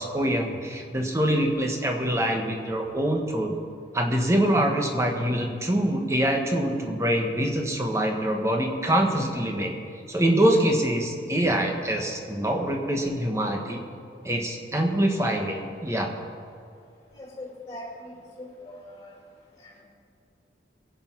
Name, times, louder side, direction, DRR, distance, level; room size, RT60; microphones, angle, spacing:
voice 1, 0.0-3.5 3.9-9.7 10.1-13.8 14.2-16.1, right 1 dB, 15° right, 2 dB, 1.3 m, -24 dB
voice 2, 17.2-18.1 18.4-19.1, left 1 dB, 20° left, -3 dB, 2.7 m, -40 dB
20.0 x 8.1 x 5.9 m, 2.3 s
head